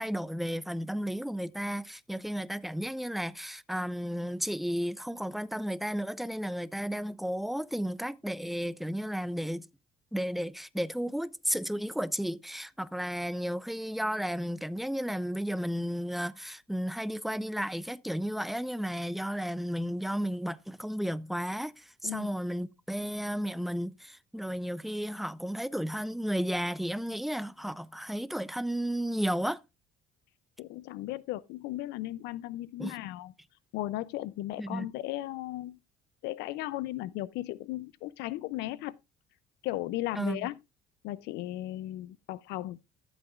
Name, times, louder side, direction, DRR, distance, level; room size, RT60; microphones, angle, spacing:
voice 1, 0.0-9.7 10.1-29.6 32.8-33.0 34.6-34.9 40.2-40.5, equal, ahead, 0.4 m, -33 dB
voice 2, 22.0-22.3 30.6-33.3 33.7-35.8 36.2-39.0 39.6-40.6 41.0-42.8, left 16 dB, 85° left, 0.4 m, -36 dB
13.0 x 7.8 x 2.3 m
cardioid pair, 110°, 17 cm